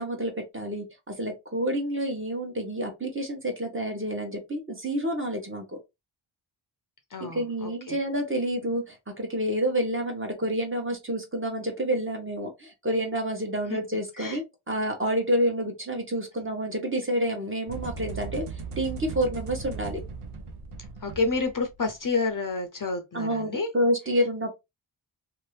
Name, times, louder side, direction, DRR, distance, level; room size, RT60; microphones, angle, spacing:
voice 1, 0.0-5.8 7.2-20.0 23.1-24.5, equal, 25° right, 1.0 m, -29 dB
voice 2, 7.1-8.0 13.7-13.8 14.2-14.4 21.0-23.7, left 3 dB, 40° left, 0.6 m, -29 dB
sound 1, 17.7-22.0, right 5 dB, 85° right, 0.7 m, -38 dB
2.8 x 2.4 x 3.2 m
wide cardioid pair, 100°, 49 cm